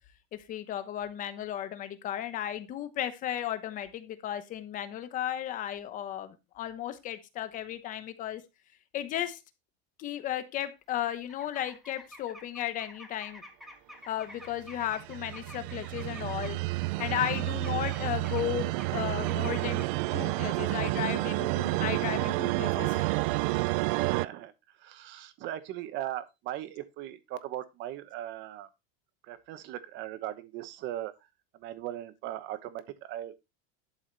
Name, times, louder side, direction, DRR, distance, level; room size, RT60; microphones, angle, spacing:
voice 1, 0.3-8.4 8.9-9.4 10.0-13.4 14.1-16.6 17.0-19.9 20.1-23.1, left 11 dB, 25° left, 0.9 m, -35 dB
sound 1, 10.9-16.5 16.8-19.9, equal, ahead, 1.3 m, -50 dB
sound 2, 14.6-24.2, right 21 dB, 60° right, 0.4 m, -30 dB
voice 2, 23.9-28.7 29.2-31.1 31.5-33.4, right 13 dB, 35° right, 1.0 m, -39 dB
11.5 x 5.0 x 4.0 m
cardioid pair, 175°, 30 cm